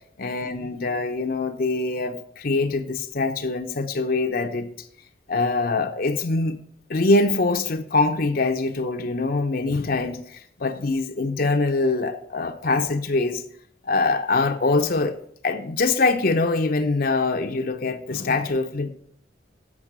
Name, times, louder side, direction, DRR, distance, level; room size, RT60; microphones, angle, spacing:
voice 1, 0.2-4.7 5.3-6.6 6.9-13.4 13.9-15.2 15.4-18.9, left 3 dB, 50° left, 0.8 m, -23 dB
7.4 x 7.0 x 8.1 m
head